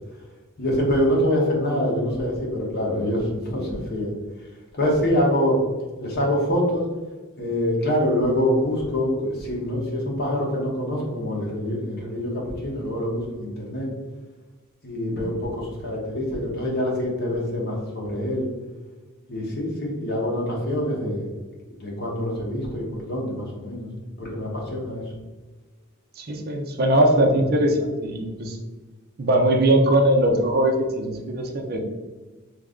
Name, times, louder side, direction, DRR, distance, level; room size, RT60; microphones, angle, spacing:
voice 1, 0.6-4.1 4.8-5.6 6.0-6.8 7.4-13.9 14.8-18.5 19.3-21.2 21.8-23.9 24.2-25.0, equal, 50° left, -3 dB, 1.0 m, -25 dB
voice 2, 26.2-28.6 29.2-31.8, right 1 dB, 50° right, 3 dB, 0.5 m, -20 dB
3.2 x 2.5 x 3.6 m, 1.2 s
head